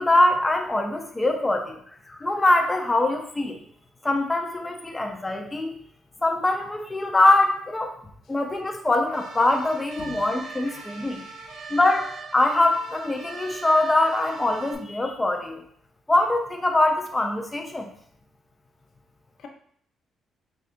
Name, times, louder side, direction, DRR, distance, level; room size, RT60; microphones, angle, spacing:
voice 1, 0.0-1.8 2.1-3.6 4.0-5.8 6.2-7.9 8.3-11.2 11.7-15.6 16.1-17.9, left 2 dB, 15° left, 3 dB, 0.5 m, -23 dB
sound 1, 9.1-14.7, right 4 dB, 80° right, 0.8 m, -41 dB
voice 2, 10.4-11.8 19.4-19.5, left 4 dB, 65° left, 3 dB, 0.7 m, -46 dB
6.4 x 2.3 x 2.5 m, 0.63 s
cardioid pair, 115°, 0 cm